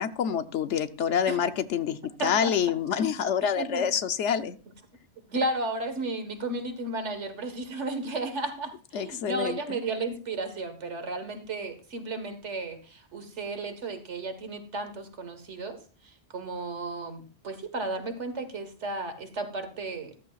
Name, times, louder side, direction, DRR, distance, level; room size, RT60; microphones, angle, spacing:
voice 1, 0.0-4.6 8.9-9.8, left 8 dB, 80° left, 11 dB, 1.1 m, -27 dB
voice 2, 2.2-2.5 3.6-3.9 5.3-15.8 16.3-20.1, right 2 dB, 80° right, 8 dB, 1.8 m, -33 dB
14.0 x 12.5 x 2.4 m, 0.35 s
omnidirectional pair, 1.2 m